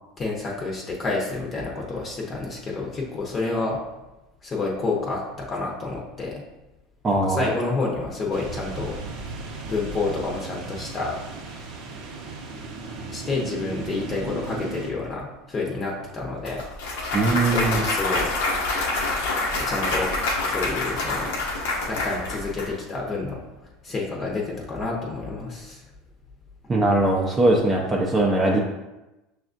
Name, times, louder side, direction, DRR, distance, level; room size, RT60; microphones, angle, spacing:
voice 1, 0.2-3.8 4.4-6.4 7.1-9.0 9.7-11.2 13.1-16.6 17.5-18.3 19.6-20.1 20.4-21.3 21.9-25.8, left 3 dB, 30° left, -2 dB, 0.7 m, -29 dB
voice 2, 7.0-7.5 17.1-17.8 26.7-28.6, right 2 dB, 25° right, -2 dB, 0.6 m, -20 dB
sound 1, 8.3-14.9, right 3 dB, 65° right, 0.7 m, -36 dB
Clapping / Cheering / Applause, 16.5-22.7, left 2 dB, 80° left, 0.8 m, -26 dB
6.1 x 2.4 x 2.5 m, 1.0 s
supercardioid pair, 100°, 0 cm